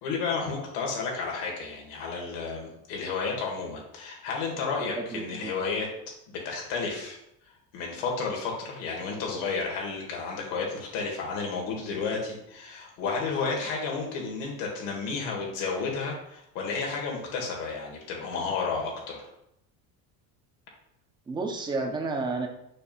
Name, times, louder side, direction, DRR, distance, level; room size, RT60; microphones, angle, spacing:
voice 1, 0.0-5.9 6.3-7.2 7.7-19.2, left 4 dB, 85° left, -1 dB, 2.0 m, -32 dB
voice 2, 4.9-5.5 21.3-22.5, right 3 dB, 10° right, 3 dB, 0.4 m, -31 dB
6.6 x 2.6 x 5.6 m, 0.79 s
cardioid pair, 175°, 43 cm